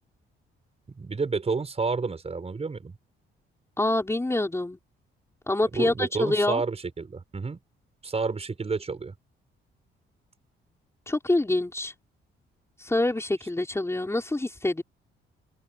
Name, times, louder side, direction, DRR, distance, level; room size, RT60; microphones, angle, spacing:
voice 1, 1.0-2.9 5.7-7.6 8.0-9.1, right 4 dB, 30° right, 6.6 m, -30 dB
voice 2, 3.8-4.8 5.5-6.6 11.1-11.9 12.8-14.8, left 2 dB, 15° left, 5.6 m, -26 dB
cardioid pair, 90°, 20 cm